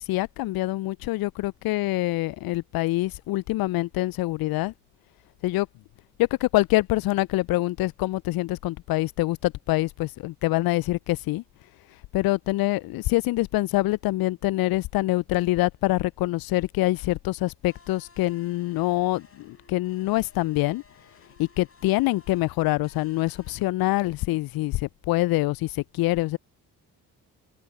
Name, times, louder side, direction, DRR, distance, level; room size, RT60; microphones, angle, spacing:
voice 1, 0.0-4.7 5.4-5.7 6.2-11.4 12.1-20.8 21.4-26.4, left 18 dB, 50° left, 0.5 m, -25 dB
sound 1, 17.7-23.6, left 4 dB, 30° left, 4.5 m, -56 dB
figure-of-eight pair, 45°, 48 cm